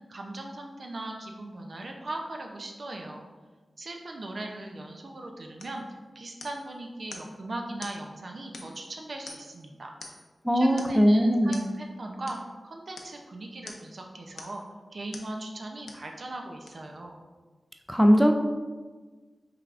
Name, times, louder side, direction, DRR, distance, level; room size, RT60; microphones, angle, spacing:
voice 1, 0.1-3.2 3.8-5.8 6.1-9.9 10.5-12.4 12.6-14.6 14.9-17.2, right 2 dB, 60° right, 2 dB, 0.6 m, -39 dB
sound 1, 5.6-5.8 6.4-6.7 7.1-7.3 7.8-8.0 8.5-8.9 9.3-9.6 10.0-10.3 10.8-11.0 11.5-11.7 12.3-12.4 13.0-13.2 13.7-13.9 14.4-14.7 15.1-15.3 15.9-16.1 16.7-16.8, left 3 dB, 90° left, 0.5 m, -45 dB
voice 2, 10.4-11.6 17.9-18.3, equal, ahead, 3 dB, 0.4 m, -20 dB
5.6 x 3.4 x 2.5 m, 1.4 s
wide cardioid pair, 70°, 0 cm